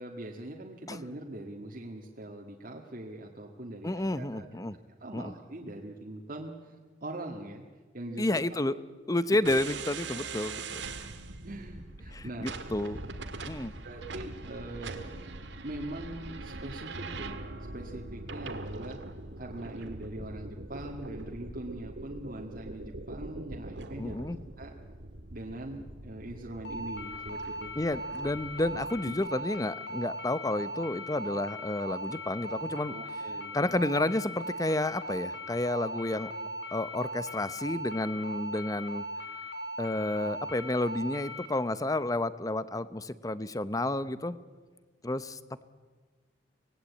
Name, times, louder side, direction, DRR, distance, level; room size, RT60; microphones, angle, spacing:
voice 1, 0.0-4.7 5.0-7.6 7.9-8.4 10.3-10.4 11.4-12.5 13.8-15.2 15.6-19.0 19.4-24.2 24.6-24.7 25.3-27.7 29.0-29.1 32.7-33.5, right 1 dB, 50° right, 0 dB, 1.9 m, -42 dB
voice 2, 3.8-4.8 5.1-5.3 8.2-8.7 9.1-10.9 12.1-13.0 13.5-13.7 24.0-24.4 27.8-32.9 33.5-36.3 36.7-39.0 39.8-44.4 45.0-45.6, left 1 dB, 20° left, 15 dB, 0.8 m, -31 dB
sound 1, 9.4-29.2, right 3 dB, 90° right, 1.8 m, -42 dB
sound 2, 26.7-41.5, equal, 85° left, 4.7 m, -39 dB
25.0 x 19.0 x 8.5 m, 1.4 s
head